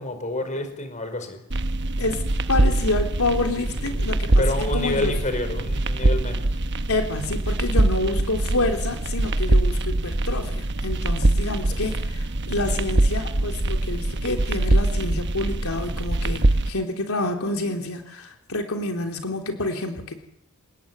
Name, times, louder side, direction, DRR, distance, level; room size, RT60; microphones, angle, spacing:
voice 1, 0.0-1.4 4.4-6.6 11.7-12.0, left 2 dB, 35° left, 8 dB, 5.1 m, -29 dB
sound 1, 1.5-16.7, right 1 dB, 55° right, 1.1 m, -23 dB
voice 2, 2.0-4.4 4.7-5.1 6.9-20.1, left 2 dB, 80° left, 3 dB, 3.5 m, -28 dB
29.5 x 18.5 x 9.7 m, 0.78 s
head